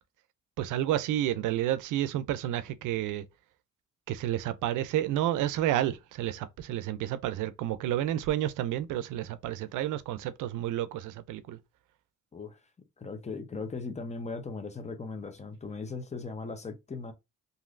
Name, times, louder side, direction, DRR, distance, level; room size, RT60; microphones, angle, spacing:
voice 1, 0.6-3.3 4.1-11.6, right 12 dB, 85° right, 0.5 m, -30 dB
voice 2, 13.0-17.1, left 4 dB, 20° left, 0.6 m, -38 dB
3.1 x 2.6 x 2.5 m
cardioid pair, 90°, 30 cm